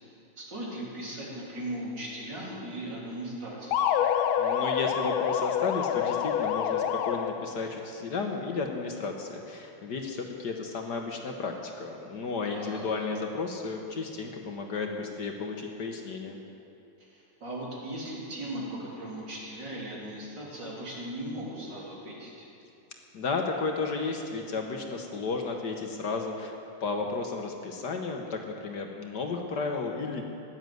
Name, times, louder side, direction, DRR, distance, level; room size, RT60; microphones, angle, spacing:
voice 1, 0.4-3.8 12.5-12.8 17.0-22.5, right 1 dB, 60° right, -5 dB, 4.2 m, -38 dB
sound 1, 3.7-7.6, left 9 dB, 90° left, 1.5 m, -27 dB
voice 2, 4.4-16.4 23.1-26.5 26.8-30.2, left 4 dB, 60° left, 2 dB, 1.6 m, -33 dB
15.5 x 10.5 x 7.8 m, 2.8 s
omnidirectional pair, 2.2 m